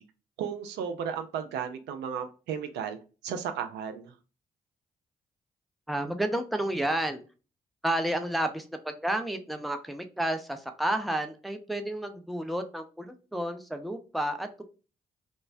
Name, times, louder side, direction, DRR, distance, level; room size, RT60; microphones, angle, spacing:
voice 1, 0.4-3.0 3.2-4.1, right 7 dB, 70° right, 8 dB, 0.4 m, -34 dB
voice 2, 5.9-7.2 7.8-14.6, right 1 dB, ahead, 6 dB, 0.5 m, -31 dB
3.1 x 2.0 x 2.5 m, 0.34 s
hypercardioid pair, 40°, 19 cm